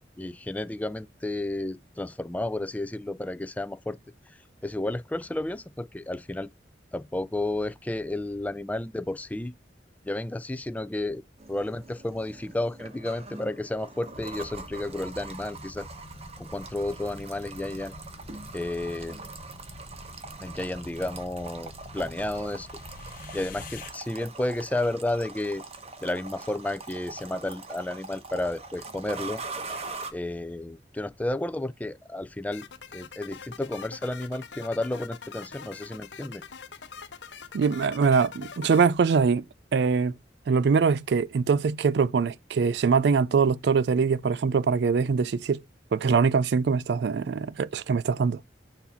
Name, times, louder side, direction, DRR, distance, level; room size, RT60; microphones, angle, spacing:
voice 1, 0.2-4.0 4.6-6.5 6.9-9.5 10.0-11.2 11.5-15.9 16.4-17.9 18.5-19.2 20.4-22.7 23.3-25.6 26.0-29.4 30.1-36.4, left 1 dB, 10° left, 0.3 m, -32 dB
sound 1, 11.4-30.1, right 3 dB, 35° right, 1.0 m, -43 dB
sound 2, 14.1-23.9, left 2 dB, 50° left, 0.9 m, -46 dB
sound 3, 32.5-38.9, left 6 dB, 85° left, 0.8 m, -44 dB
voice 2, 37.5-39.4 39.7-40.1 40.5-45.6 45.9-48.4, right 5 dB, 65° right, 0.4 m, -23 dB
7.1 x 2.7 x 5.5 m
head